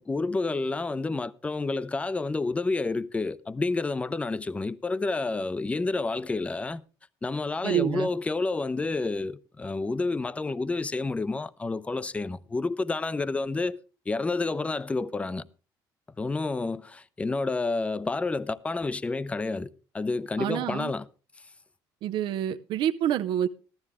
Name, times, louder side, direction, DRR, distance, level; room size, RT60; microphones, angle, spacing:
voice 1, 0.0-6.8 7.2-13.8 14.1-15.4 16.2-19.7 19.9-21.0, left 3 dB, 15° left, 0.5 m, -29 dB
voice 2, 7.6-8.1 20.4-20.9 22.0-23.5, right 10 dB, 70° right, 0.5 m, -27 dB
14.5 x 13.0 x 3.5 m
cardioid pair, 115°, 8 cm